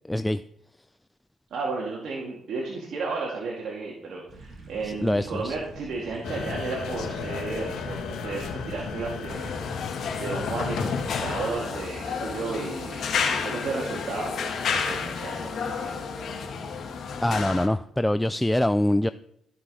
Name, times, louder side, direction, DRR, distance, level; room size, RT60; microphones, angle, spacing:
voice 1, 0.1-0.4 4.8-5.6 17.2-19.1, left 1 dB, 5° left, 12 dB, 0.3 m, -24 dB
voice 2, 1.5-9.7 10.2-13.0 13.3-15.9, right 4 dB, 65° right, -2 dB, 2.2 m, -33 dB
sound 1, 4.3-9.6, right 1 dB, 50° right, 2.9 m, -45 dB
sound 2, 6.2-11.5, left 5 dB, 80° left, 1.5 m, -33 dB
sound 3, 9.3-17.7, left 5 dB, 60° left, 1.7 m, -31 dB
14.0 x 6.0 x 4.8 m, 0.74 s
cardioid pair, 90°, 0 cm